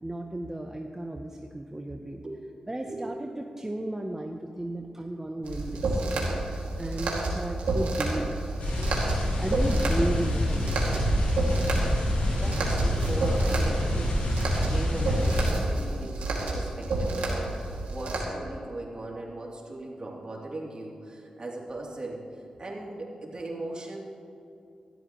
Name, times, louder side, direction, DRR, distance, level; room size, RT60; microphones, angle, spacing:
voice 1, 0.0-2.2 2.7-8.9 9.4-11.3, right 1 dB, 20° right, 3 dB, 0.8 m, -35 dB
voice 2, 2.8-3.1 12.3-22.2 22.6-24.0, right 2 dB, 45° right, -2 dB, 3.0 m, -39 dB
sound 1, 5.4-18.2, right 2 dB, 90° right, 2.3 m, -30 dB
sound 2, 8.6-15.5, left 1 dB, 80° left, 3.3 m, -27 dB
17.5 x 12.0 x 3.1 m, 2.5 s
cardioid pair, 50°, 2 cm